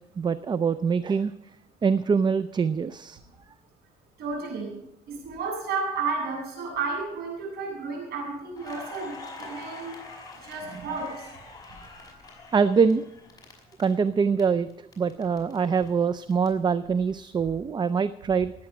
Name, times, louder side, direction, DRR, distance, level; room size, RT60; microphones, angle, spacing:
voice 1, 0.2-1.3 1.8-3.2 12.5-13.1 13.8-14.7 15.0-18.5, right 5 dB, 25° right, 14 dB, 0.5 m, -24 dB
voice 2, 4.2-4.7 5.1-9.1 9.4-10.0 10.4-11.3, right 4 dB, 75° right, -1 dB, 7.8 m, -32 dB
Crackle, 8.6-14.4 14.7-16.5, left 3 dB, 20° left, 5.1 m, -44 dB
19.0 x 8.8 x 6.0 m, 0.83 s
cardioid pair, 110°, 17 cm